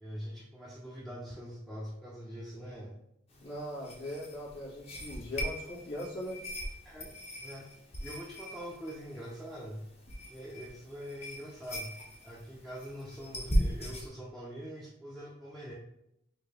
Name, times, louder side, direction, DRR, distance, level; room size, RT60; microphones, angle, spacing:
voice 1, 0.0-3.0 6.8-7.1 7.4-7.7 8.0-9.9 10.3-15.7, equal, ahead, -5 dB, 0.5 m, -44 dB
sound 1, 3.3-14.1, equal, 35° left, 0.9 m, -38 dB
voice 2, 3.4-6.4, left 1 dB, 90° left, -6 dB, 1.5 m, -40 dB
4.3 x 2.7 x 3.2 m, 0.79 s
head